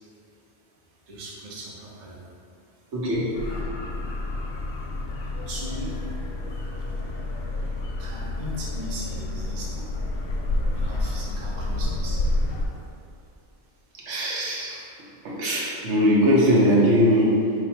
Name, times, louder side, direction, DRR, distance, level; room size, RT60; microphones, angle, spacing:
voice 1, 0.1-0.4 0.9-3.7 4.3-4.8 5.3-7.5 7.9-12.9 15.1-15.7, equal, 45° right, -5 dB, 0.7 m, -41 dB
voice 2, 2.9-3.3 6.4-6.5 14.1-14.9 15.2-17.4, equal, 90° right, -5 dB, 1.1 m, -20 dB
sound 1, 3.3-12.7, left 2 dB, 65° left, 0.7 m, -29 dB
3.3 x 2.4 x 4.3 m, 2.5 s
omnidirectional pair, 1.2 m